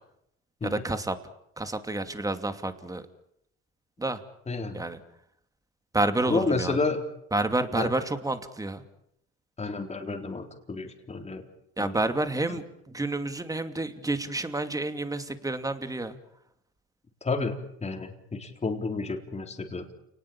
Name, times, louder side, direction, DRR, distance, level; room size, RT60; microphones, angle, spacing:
voice 1, 0.6-1.2 1.6-3.0 4.0-4.2 4.7-5.0 5.9-6.8 7.3-8.8 11.8-16.2, right 2 dB, 10° right, 9 dB, 2.6 m, -29 dB
voice 2, 4.5-4.8 6.3-7.0 7.7-7.9 9.6-11.4 11.8-12.0 17.2-19.9, left 3 dB, 20° left, 3 dB, 4.1 m, -30 dB
29.5 x 19.0 x 8.8 m, 0.77 s
cardioid pair, 105°, 29 cm